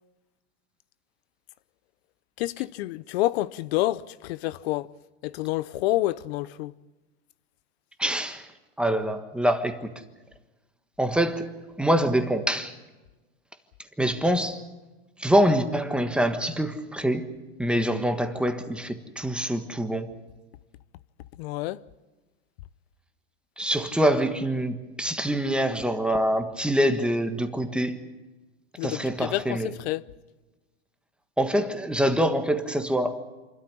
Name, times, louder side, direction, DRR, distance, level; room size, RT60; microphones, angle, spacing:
voice 1, 2.4-4.9 5.2-6.7 21.4-21.8 28.8-30.0, left 16 dB, 70° left, 0.7 m, -28 dB
voice 2, 8.0-8.5 8.8-9.9 11.0-11.5 11.8-12.7 14.0-14.6 15.2-20.1 23.6-28.0 28.8-29.7 31.4-33.2, equal, 5° right, 1.4 m, -25 dB
27.0 x 13.0 x 9.9 m
supercardioid pair, 140°, 32 cm